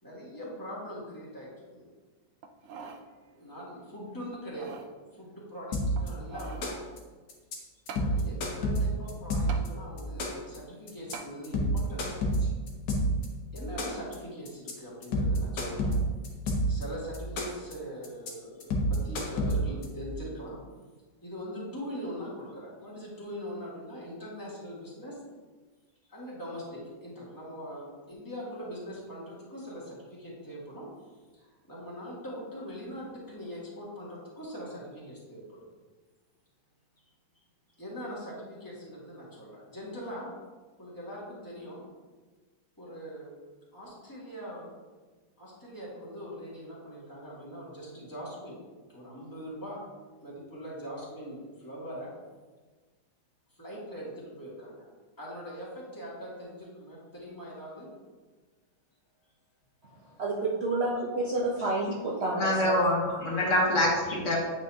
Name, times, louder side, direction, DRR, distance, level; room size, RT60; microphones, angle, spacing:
voice 1, 0.0-1.8 3.3-4.8 5.1-6.8 7.9-12.5 13.5-16.0 16.7-20.6 21.2-25.2 26.1-30.9 31.3-35.7 37.8-40.3 40.8-41.9 42.8-43.3 43.7-44.7 45.4-48.6 48.9-49.8 50.2-52.1 53.5-54.9 55.2-57.9, equal, 10° left, -7 dB, 1.8 m, -42 dB
sound 1, 2.4-3.1 3.5-3.6 4.3-4.9 5.9-6.7 7.9-8.1 9.5-9.7 11.1-11.3 11.9-12.0, right 5 dB, 90° right, 0.7 m, -43 dB
sound 2, 5.7-6.1 6.4-7.0 7.3-7.6 7.9-9.7 10.0-10.6 10.9-11.1 11.4-13.3 13.6-14.2 14.5-14.7 15.0-16.8 17.1-17.7 18.0-18.3 18.6-19.9, equal, 70° left, 1.6 m, -28 dB
voice 2, 60.2-62.8, right 2 dB, 55° right, -3 dB, 0.7 m, -29 dB
voice 3, 62.3-64.4, left 1 dB, 50° left, -2 dB, 1.3 m, -25 dB
8.6 x 4.8 x 2.7 m, 1.4 s
omnidirectional pair, 2.0 m